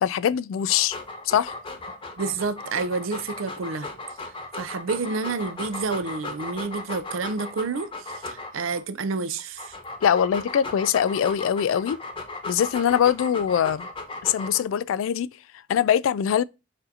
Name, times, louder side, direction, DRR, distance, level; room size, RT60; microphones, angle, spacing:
voice 1, 0.0-1.0 1.2-1.5 10.0-12.0 12.5-13.9 14.2-15.3 15.7-16.4, left 9 dB, 80° left, 0.3 m, -22 dB
Dog, 0.6-8.8 9.4-14.8, left 2 dB, 25° left, 0.8 m, -36 dB
voice 2, 2.2-3.9 4.2-9.8, right 4 dB, 90° right, 0.5 m, -29 dB
6.4 x 2.6 x 2.7 m
head